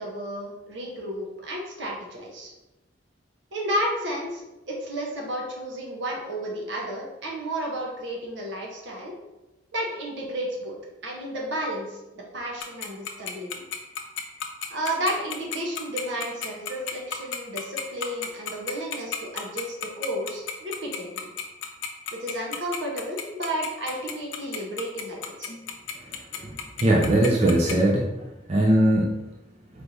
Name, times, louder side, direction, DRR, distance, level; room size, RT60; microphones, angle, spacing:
voice 1, 0.0-2.5 3.5-9.1 9.7-10.8 11.0-13.6 14.7-21.3 22.1-25.5, equal, 75° right, -1 dB, 1.0 m, -32 dB
Tick-tock, 12.6-27.7, left 8 dB, 85° left, 0.5 m, -32 dB
voice 2, 26.8-28.1 28.5-29.1, right 1 dB, 35° right, -3 dB, 0.5 m, -20 dB
4.4 x 3.3 x 2.7 m, 1.0 s
head